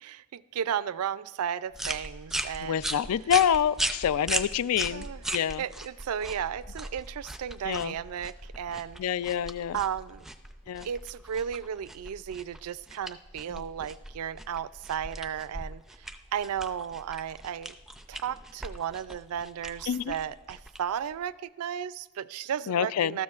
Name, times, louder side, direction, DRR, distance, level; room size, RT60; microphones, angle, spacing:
voice 1, 0.0-3.0 4.9-9.0 9.7-10.3 10.8-17.7 18.1-23.2, right 8 dB, 80° right, 17 dB, 0.4 m, -34 dB
sound 1, 1.7-21.3, right 1 dB, ahead, 0.4 m, -38 dB
voice 2, 2.6-5.0 5.3-5.6 7.7-7.9 9.0-9.8 10.7-10.9 13.5-13.6 19.9-20.1 22.7-23.2, left 9 dB, 75° left, 18 dB, 0.3 m, -27 dB
19.5 x 13.0 x 2.4 m, 1.1 s
head